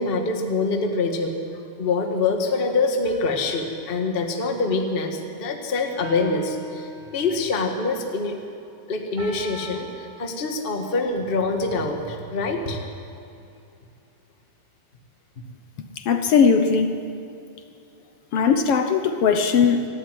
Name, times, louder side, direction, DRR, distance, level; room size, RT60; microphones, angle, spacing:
voice 1, 0.0-1.3 1.8-8.4 8.9-12.8, left 3 dB, 30° left, 3 dB, 1.1 m, -25 dB
sound 1, 3.0-5.4 6.0-7.5 9.2-9.8, right 1 dB, 60° right, 8.0 m, -38 dB
voice 2, 16.0-16.9 18.3-19.9, left 6 dB, 70° left, 7 dB, 1.4 m, -19 dB
25.0 x 12.5 x 9.4 m, 2.6 s
omnidirectional pair, 4.1 m